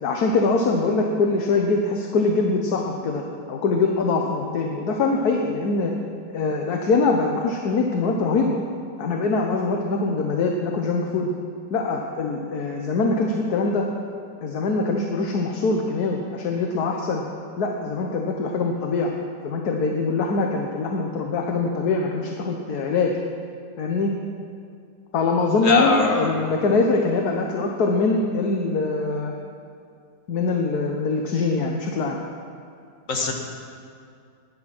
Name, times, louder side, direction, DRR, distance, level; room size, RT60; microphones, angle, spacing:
voice 1, 0.0-5.9 6.3-8.6 9.0-11.3 11.7-13.8 14.4-17.3 17.6-19.1 19.4-23.2 23.8-24.1 25.1-29.3 30.3-32.2, left 3 dB, 70° left, 1 dB, 1.6 m, -23 dB
voice 2, 25.6-26.3 33.1-33.3, left 3 dB, 50° left, 0 dB, 2.2 m, -22 dB
18.5 x 10.5 x 6.1 m, 2.3 s
omnidirectional pair, 1.8 m